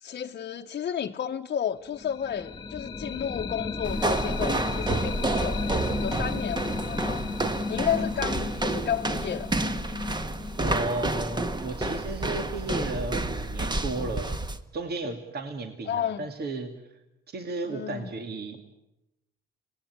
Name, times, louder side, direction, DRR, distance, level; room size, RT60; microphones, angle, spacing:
voice 1, 0.0-7.2 7.7-9.5 15.8-16.3 17.7-18.1, left 9 dB, 50° left, 2 dB, 1.0 m, -32 dB
sound 1, 1.9-11.7, left 4 dB, 20° left, 1.9 m, -35 dB
sound 2, 3.8-14.6, right 2 dB, 20° right, 1.5 m, -29 dB
voice 2, 10.6-14.4 14.7-16.7 17.3-18.7, right 2 dB, 55° right, 6 dB, 2.4 m, -34 dB
25.5 x 19.0 x 9.7 m, 0.91 s
cardioid pair, 90°, 20 cm